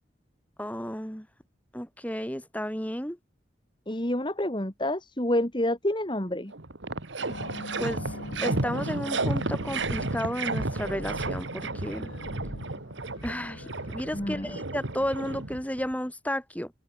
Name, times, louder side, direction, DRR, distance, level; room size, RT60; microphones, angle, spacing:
voice 1, 0.6-1.3 1.7-3.2 7.8-8.0 8.4-12.1 13.2-16.7, equal, 10° left, 7.0 m, -33 dB
voice 2, 3.9-6.5 14.1-14.5, left 1 dB, 25° left, 2.4 m, -28 dB
sound 1, 6.2-6.3 6.5-15.9, right 2 dB, 75° right, 1.9 m, -32 dB
sound 2, 7.3-16.1, left 1 dB, 85° left, 6.6 m, -43 dB
open air
head